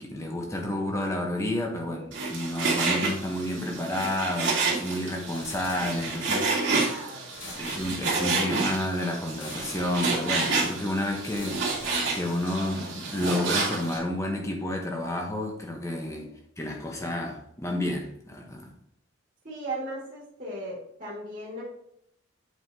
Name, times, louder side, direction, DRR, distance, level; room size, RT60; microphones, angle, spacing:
voice 1, 0.0-6.9 7.5-16.3 16.6-18.7, left 1 dB, 15° left, 1.0 m, -30 dB
Frying (food), 2.1-14.0, right 3 dB, 60° right, 2.4 m, -29 dB
sound 1, 5.3-6.4 7.3-8.5 9.3-10.3 11.2-12.5, left 2 dB, 70° left, 2.0 m, -45 dB
voice 2, 6.7-7.7 8.1-8.6 16.1-16.3 19.4-21.6, right 1 dB, 40° right, 2.1 m, -38 dB
8.3 x 5.7 x 2.8 m
head